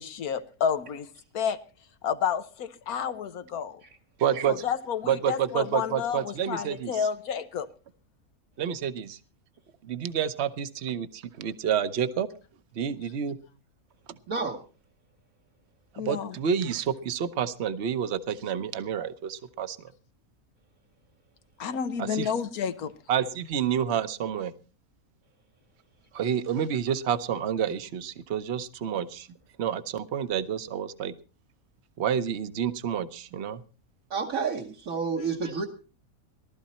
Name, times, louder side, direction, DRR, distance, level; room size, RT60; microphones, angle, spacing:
voice 1, 0.0-1.6 2.0-3.8 4.5-7.7 16.0-16.4 21.6-22.9, left 7 dB, 90° left, 1.4 m, -30 dB
voice 2, 4.2-4.6 5.1-7.0 8.6-9.2 9.8-12.3 12.7-13.4 14.1-14.2 15.9-19.9 22.0-22.3 23.1-24.5 26.1-29.3 29.6-31.1 32.0-33.6, right 8 dB, 55° right, 1.1 m, -29 dB
voice 3, 14.3-14.6 34.1-35.7, right 5 dB, 70° right, 1.8 m, -29 dB
18.5 x 12.5 x 4.3 m
omnidirectional pair, 1.5 m